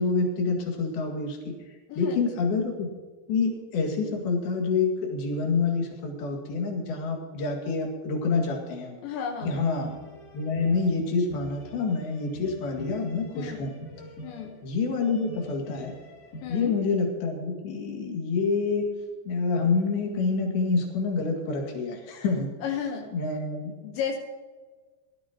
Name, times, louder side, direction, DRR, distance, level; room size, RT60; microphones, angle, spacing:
voice 1, 0.0-1.5 2.0-2.9 3.3-9.0 9.5-9.9 10.3-13.7 14.6-15.9 16.5-18.9 19.3-22.5 23.1-23.7, left 4 dB, 60° left, 1 dB, 3.8 m, -27 dB
voice 2, 1.9-2.2 9.0-9.7 13.3-13.7 14.2-14.6 16.4-16.8 22.6-23.1 23.7-24.2, left 7 dB, 80° left, 0 dB, 3.4 m, -33 dB
sound 1, 9.4-16.8, equal, 40° left, 3.0 m, -44 dB
22.5 x 13.5 x 2.9 m, 1.4 s
omnidirectional pair, 5.1 m